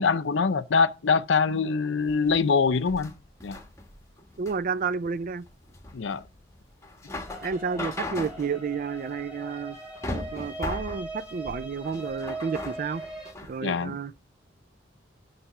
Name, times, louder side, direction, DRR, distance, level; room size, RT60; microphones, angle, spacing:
voice 1, 0.0-3.1 3.4-3.6 5.9-6.2 13.6-14.0, left 5 dB, 70° left, 0.5 m, -24 dB
sound 1, 2.0-13.6, left 2 dB, 15° left, 1.2 m, -39 dB
voice 2, 4.4-5.5 7.4-9.8 10.1-13.0 13.5-14.1, right 5 dB, 50° right, 0.4 m, -31 dB
sound 2, 7.3-13.3, right 2 dB, 5° right, 3.1 m, -40 dB
9.9 x 3.4 x 5.9 m
head